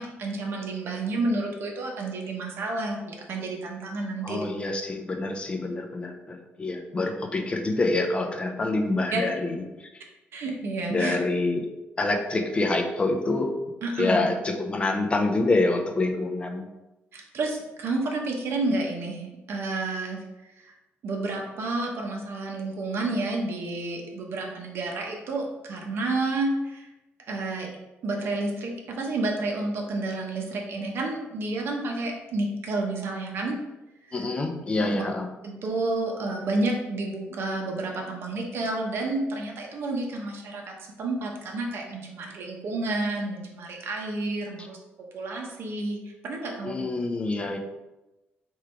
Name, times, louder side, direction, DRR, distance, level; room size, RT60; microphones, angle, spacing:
voice 1, 0.0-4.5 9.1-9.2 10.3-11.2 13.8-14.2 17.1-20.2 21.0-26.9 27.3-27.7 28.0-33.6 34.8-34.9 35.4-44.8 45.1-46.8, right 2 dB, 60° right, 0 dB, 1.0 m, -30 dB
voice 2, 4.2-9.6 10.9-11.7 12.0-13.6 14.0-16.7 34.1-35.3 46.6-47.6, left 2 dB, 25° left, 4 dB, 0.6 m, -26 dB
3.6 x 3.2 x 4.5 m, 1.0 s
cardioid pair, 120°, 4 cm